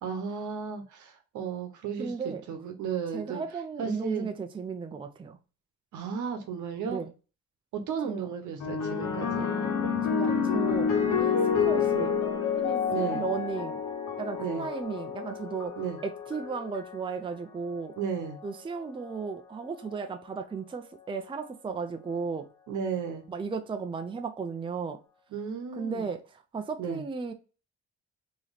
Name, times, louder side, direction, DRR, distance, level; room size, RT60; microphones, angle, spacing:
voice 1, 0.0-3.4 3.8-4.3 5.9-7.0 7.7-9.5 12.9-13.3 14.4-14.7 15.8-16.0 18.0-18.4 22.7-23.2 25.3-26.1 26.8-27.0, right 6 dB, 75° right, 0.9 m, -34 dB
voice 2, 2.0-2.4 3.1-5.4 6.9-7.1 8.0-8.3 10.0-12.1 12.5-13.8 14.2-17.9 18.4-22.5 23.3-25.0 25.8-27.3, right 5 dB, 15° right, 0.5 m, -35 dB
sound 1, 8.6-17.2 18.1-18.5, left 6 dB, 75° left, 1.2 m, -29 dB
3.1 x 3.0 x 3.9 m
cardioid pair, 90°, 30 cm